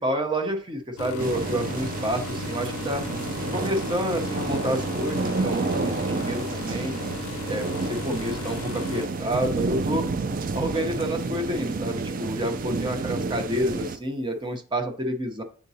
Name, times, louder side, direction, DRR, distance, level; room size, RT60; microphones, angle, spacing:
voice 1, 0.0-3.0 3.5-7.0 7.5-10.1 10.5-15.4, equal, 20° right, 5 dB, 0.8 m, -29 dB
sound 1, 1.0-10.1 10.6-10.8 11.7-11.8, left 5 dB, 80° left, 0.4 m, -36 dB
sound 2, 1.2-14.0, right 3 dB, 40° right, 0.4 m, -30 dB
7.1 x 5.2 x 2.8 m, 0.44 s
head